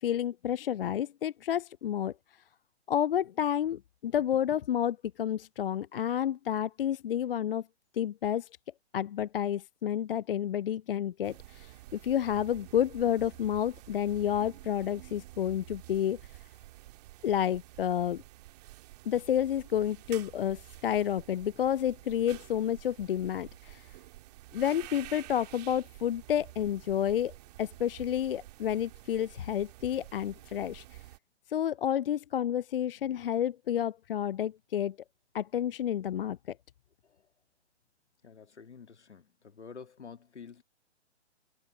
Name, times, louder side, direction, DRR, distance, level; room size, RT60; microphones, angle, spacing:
voice 1, 0.0-2.1 2.9-7.6 7.9-8.5 8.9-16.2 17.2-18.2 19.1-23.9 24.5-30.8 31.5-35.0 35.3-36.4, left 10 dB, 55° left, 0.4 m, -30 dB
sound 1, 11.2-31.2, right 17 dB, 35° right, 2.0 m, -50 dB
voice 2, 38.2-40.6, left 6 dB, 75° left, 1.9 m, -49 dB
figure-of-eight pair, 130°, 35 cm